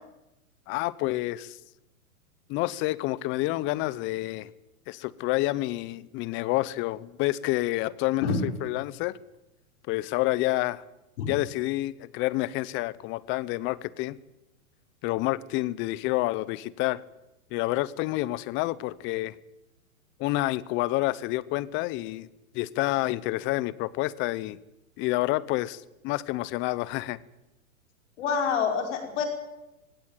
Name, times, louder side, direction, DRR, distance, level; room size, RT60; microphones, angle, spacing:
voice 1, 0.7-1.6 2.5-4.5 4.9-9.2 9.9-10.8 11.3-14.2 15.0-17.0 17.5-19.4 20.2-22.3 22.5-24.6 25.0-27.2, left 18 dB, 30° left, 20 dB, 0.8 m, -28 dB
voice 2, 28.2-29.3, left 6 dB, 55° left, 4 dB, 5.5 m, -26 dB
18.5 x 17.0 x 9.2 m, 0.94 s
hypercardioid pair, 130°, 42 cm